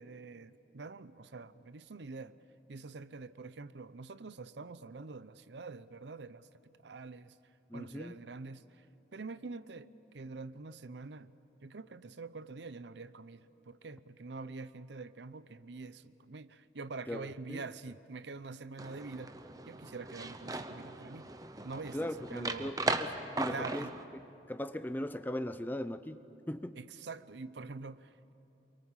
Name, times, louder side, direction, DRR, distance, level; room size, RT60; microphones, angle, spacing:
voice 1, 0.0-2.3 2.7-7.4 7.7-8.9 9.1-11.3 11.6-19.3 19.7-21.3 21.6-22.7 23.5-23.9 26.8-28.3, right 3 dB, 70° right, 0.7 m, -45 dB
voice 2, 7.7-8.2 17.1-17.7 21.9-24.2 24.5-26.8, left 1 dB, 10° left, 0.6 m, -39 dB
sound 1, 18.8-24.0, right 2 dB, 20° right, 0.9 m, -38 dB
29.0 x 23.0 x 7.3 m
head